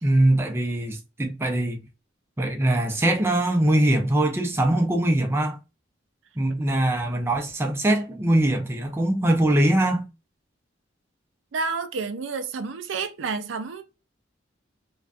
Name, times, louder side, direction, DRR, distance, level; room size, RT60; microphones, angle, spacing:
voice 1, 0.0-1.8 2.4-5.6 6.4-10.0, right 1 dB, 15° right, 0.4 m, -22 dB
voice 2, 11.5-13.8, right 4 dB, 75° right, 0.4 m, -30 dB
2.5 x 2.2 x 2.4 m
head